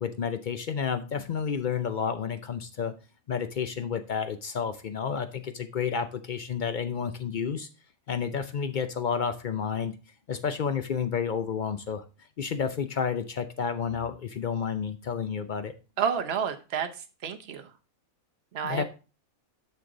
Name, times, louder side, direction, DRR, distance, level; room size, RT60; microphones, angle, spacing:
voice 1, 0.0-2.9 3.3-7.7 8.1-9.9 10.3-12.0 12.4-15.7 18.6-18.8, left 6 dB, 65° left, 9 dB, 0.4 m, -30 dB
voice 2, 16.0-16.9 17.2-17.7 18.5-18.8, right 7 dB, 50° right, 6 dB, 1.0 m, -29 dB
6.8 x 6.6 x 3.8 m, 0.33 s
omnidirectional pair, 1.5 m